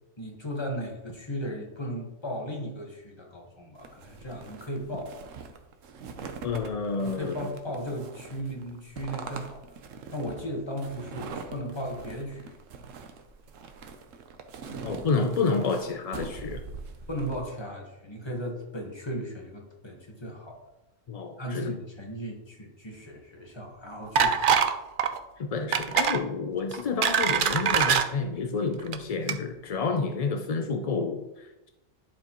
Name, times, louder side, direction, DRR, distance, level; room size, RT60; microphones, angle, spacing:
voice 1, 0.2-5.1 7.0-9.6 10.1-12.5 17.1-20.6 21.4-24.6, equal, 20° left, 0 dB, 1.4 m, -36 dB
sound 1, 3.8-17.4, right 5 dB, 90° right, 1.2 m, -43 dB
voice 2, 6.4-7.4 14.8-16.6 21.1-21.7 25.4-31.7, left 4 dB, 60° left, 5 dB, 0.4 m, -29 dB
sound 2, 24.1-24.7 25.0-25.2 25.7-26.2 26.7-28.0 28.8-29.0 29.3-29.4, right 7 dB, 55° right, 0.6 m, -23 dB
11.0 x 4.7 x 3.0 m, 0.98 s
omnidirectional pair, 1.3 m